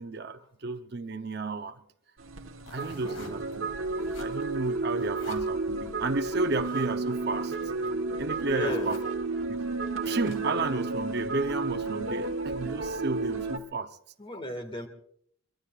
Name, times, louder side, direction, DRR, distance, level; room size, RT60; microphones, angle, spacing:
voice 1, 0.0-1.8 2.7-3.6 4.1-7.5 8.2-9.0 9.5-9.6 10.1-14.0, right 3 dB, 50° right, 8 dB, 0.8 m, -32 dB
sound 1, 2.2-13.6, right 3 dB, 75° right, 1.2 m, -32 dB
sound 2, 2.6-3.5 3.8-4.5 4.9-5.5 6.4-6.9 7.9-8.0 8.2-8.3 8.6-9.1 10.0-10.6, left 2 dB, 90° left, 3.0 m, -47 dB
voice 2, 2.8-3.2 8.5-9.0 14.2-14.9, left 1 dB, 25° left, 5 dB, 1.8 m, -35 dB
23.5 x 23.0 x 2.5 m, 0.66 s
head